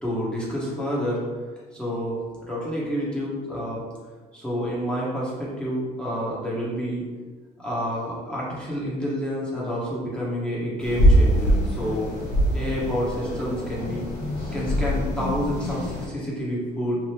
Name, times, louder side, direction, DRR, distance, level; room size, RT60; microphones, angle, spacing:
voice 1, 0.0-1.2 1.7-3.8 4.3-7.1 7.6-12.1 12.5-14.1 14.5-17.0, equal, 5° left, -7 dB, 1.0 m, -28 dB
sound 1, 10.8-16.1, equal, 65° left, 1.1 m, -23 dB
2.8 x 2.5 x 3.3 m, 1.4 s
cardioid pair, 110°, 17 cm